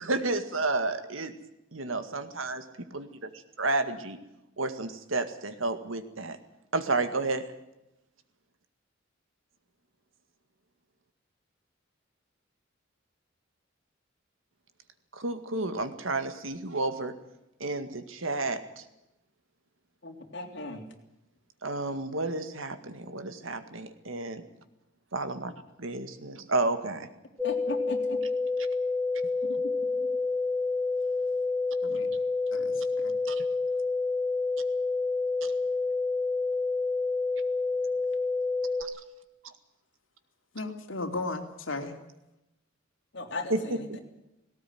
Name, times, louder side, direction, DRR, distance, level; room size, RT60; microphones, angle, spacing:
voice 1, 0.0-1.3 1.7-2.6 2.9-3.1 3.6-4.2 4.6-6.4 6.7-7.4 15.2-17.1 17.6-18.6 21.6-24.4 25.1-25.5 25.8-27.1 33.3-33.4 38.8-38.9 43.5-44.0, right 2 dB, 80° right, 10 dB, 2.0 m, -31 dB
voice 2, 20.0-20.8 27.4-28.2 30.0-30.1 43.1-44.0, left 2 dB, 60° left, 3 dB, 3.4 m, -37 dB
sound 1, 27.4-38.8, left 3 dB, ahead, 1.3 m, -28 dB
voice 3, 32.5-33.1 40.5-41.9, left 3 dB, 80° left, 5 dB, 2.8 m, -36 dB
18.0 x 18.0 x 9.4 m, 0.91 s
head